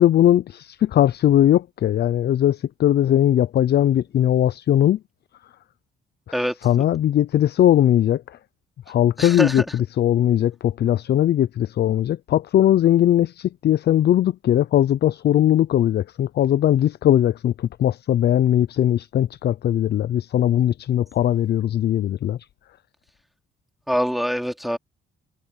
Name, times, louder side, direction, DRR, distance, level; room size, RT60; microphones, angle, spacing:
voice 1, 0.0-5.0 6.6-8.4 8.9-22.4, left 11 dB, 55° left, 0.5 m, -19 dB
voice 2, 9.2-9.6 23.9-24.8, equal, ahead, 3.0 m, -24 dB
cardioid pair, 90°, 20 cm